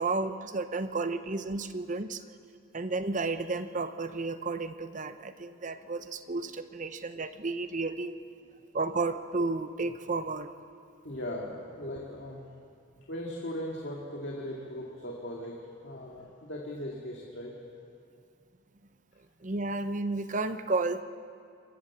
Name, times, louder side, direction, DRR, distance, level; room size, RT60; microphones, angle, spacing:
voice 1, 0.0-2.2 2.7-8.2 8.7-10.5 19.4-21.0, right 3 dB, 40° right, 10 dB, 0.8 m, -32 dB
voice 2, 8.6-8.9 11.0-12.5 13.1-17.5, left 1 dB, 55° left, -2 dB, 2.2 m, -39 dB
26.5 x 14.5 x 7.3 m, 2.4 s
head